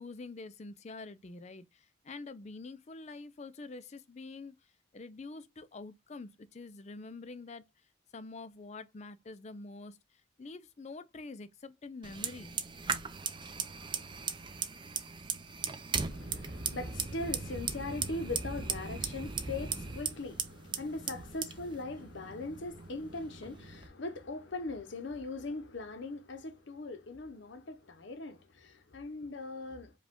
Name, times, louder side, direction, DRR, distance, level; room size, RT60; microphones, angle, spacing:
voice 1, 0.0-7.7 8.1-12.5, left 3 dB, 35° left, 0.4 m, -46 dB
Fire, 12.0-23.9, right 5 dB, 25° right, 0.5 m, -38 dB
voice 2, 15.9-29.9, left 2 dB, 60° left, 0.7 m, -40 dB
4.9 x 2.3 x 3.5 m
head